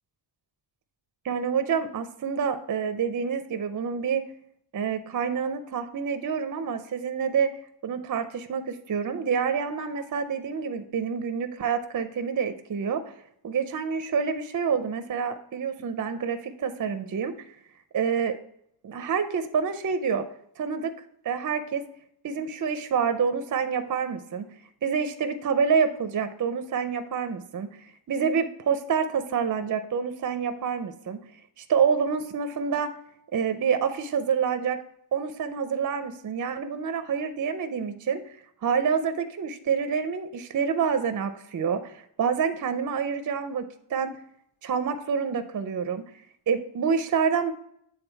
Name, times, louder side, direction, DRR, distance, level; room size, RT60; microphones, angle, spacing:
voice 1, 1.2-4.2 4.7-7.5 7.8-13.2 13.4-17.6 17.9-18.4 18.8-20.3 20.6-20.9 21.2-21.9 22.2-24.5 24.8-31.3 31.6-32.9 33.3-34.8 35.1-38.4 38.6-44.1 44.6-46.1 46.5-47.5, right 6 dB, 40° right, 9 dB, 0.5 m, -27 dB
8.1 x 3.7 x 4.5 m, 0.70 s
wide cardioid pair, 160°, 49 cm